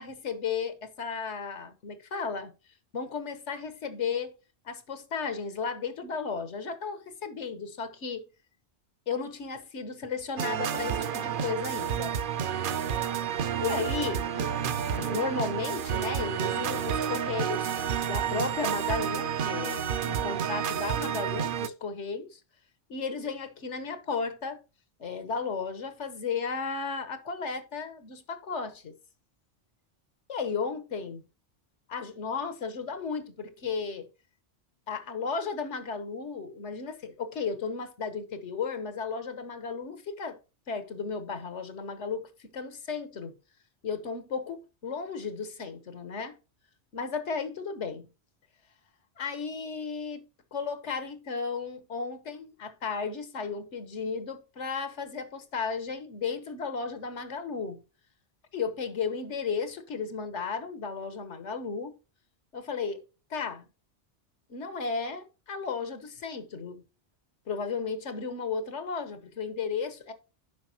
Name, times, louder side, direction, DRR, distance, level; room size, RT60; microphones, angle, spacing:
voice 1, 0.0-2.5 2.9-4.3 4.6-8.3 9.1-12.2 13.6-14.5 14.9-17.7 18.0-22.4 22.9-24.6 25.0-28.9 30.3-31.2 31.9-34.1 34.9-40.4 40.7-43.3 43.8-46.4 46.9-48.1 49.2-50.2 50.5-57.8 58.5-61.9 62.5-63.0 63.3-63.7 64.5-66.8 67.5-70.1, left 5 dB, 85° left, 1.5 m, -34 dB
sound 1, 10.4-21.7, right 8 dB, 55° right, 0.7 m, -30 dB
9.4 x 6.1 x 2.8 m
omnidirectional pair, 1.2 m